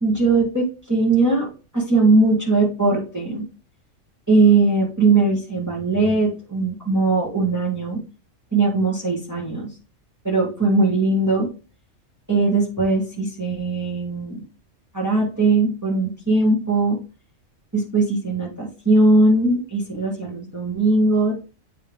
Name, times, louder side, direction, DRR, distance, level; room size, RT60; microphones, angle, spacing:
voice 1, 0.0-1.5 1.7-3.5 4.3-8.0 8.5-9.7 10.2-11.5 12.3-14.4 14.9-17.0 17.7-21.3, right 3 dB, 15° right, -4 dB, 1.7 m, -19 dB
8.4 x 3.3 x 3.5 m, 0.34 s
omnidirectional pair, 1.3 m